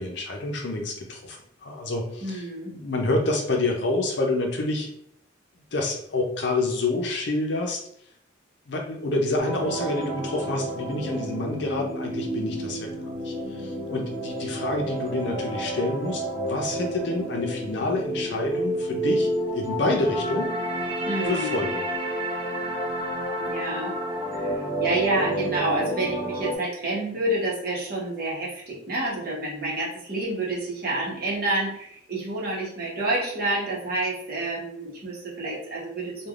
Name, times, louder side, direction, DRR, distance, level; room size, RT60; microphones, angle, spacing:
voice 1, 0.0-4.9 5.7-7.8 8.7-12.9 13.2-20.5 21.3-21.8, left 2 dB, 60° left, 2 dB, 0.5 m, -28 dB
voice 2, 2.2-2.7 21.1-21.6 23.4-23.9 24.3-36.3, right 2 dB, 50° right, -5 dB, 1.0 m, -29 dB
sound 1, 9.4-26.6, right 1 dB, 25° right, 0.6 m, -30 dB
3.2 x 2.2 x 2.4 m, 0.69 s
head